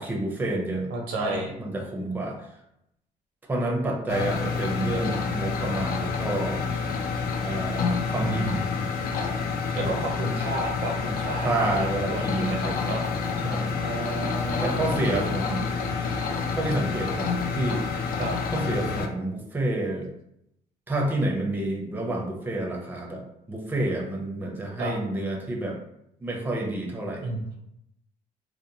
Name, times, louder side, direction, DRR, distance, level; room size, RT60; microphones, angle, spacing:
voice 1, 0.0-0.9 1.1-2.5 3.5-6.6 7.4-8.6 9.7-10.0 11.4-12.7 13.4-13.8 14.6-15.7 16.5-18.1 18.5-20.1 20.9-23.2 23.5-25.8 26.2-27.2, right 2 dB, 10° right, 0 dB, 0.5 m, -29 dB
voice 2, 0.9-1.5 8.2-8.8 9.7-13.0 13.8-15.0 18.2-18.4 24.8-24.9 27.2-27.4, right 2 dB, 80° right, 1 dB, 0.7 m, -32 dB
sound 1, 4.1-19.1, left 5 dB, 60° left, 0.4 m, -28 dB
2.9 x 2.0 x 2.6 m, 0.79 s
cardioid pair, 110°, 17 cm